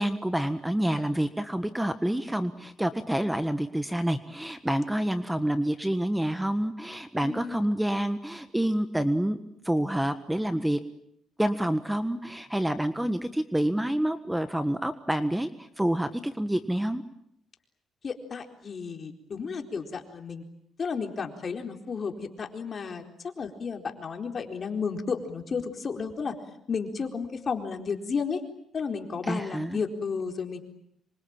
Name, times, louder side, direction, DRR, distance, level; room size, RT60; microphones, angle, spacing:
voice 1, 0.0-9.4 9.6-10.8 11.4-17.0 29.2-29.8, right 1 dB, 5° right, 11 dB, 1.5 m, -28 dB
voice 2, 7.2-7.7 18.0-20.4 20.8-26.3 26.7-28.4 28.7-30.6, left 5 dB, 45° left, 5 dB, 4.2 m, -33 dB
26.5 x 24.5 x 9.0 m, 0.74 s
cardioid pair, 90°, 0 cm